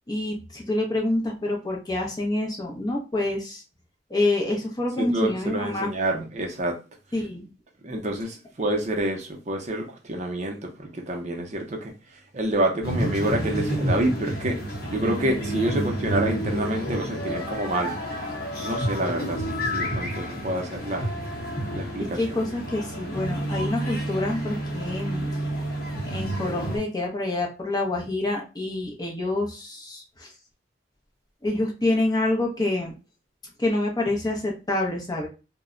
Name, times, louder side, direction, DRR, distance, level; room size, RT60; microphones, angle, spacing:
voice 1, 0.1-3.6 4.1-5.9 7.1-7.4 22.1-25.3 26.0-30.3 31.4-32.9 33.6-35.3, left 2 dB, 20° left, 0.6 m, -27 dB
voice 2, 5.0-6.8 7.8-11.9 12.3-14.6 14.9-18.0 18.6-21.1 21.7-22.4, right 1 dB, 40° right, 0.5 m, -28 dB
sound 1, 12.8-26.8, right 1 dB, 55° left, 0.8 m, -30 dB
2.1 x 2.0 x 3.6 m
head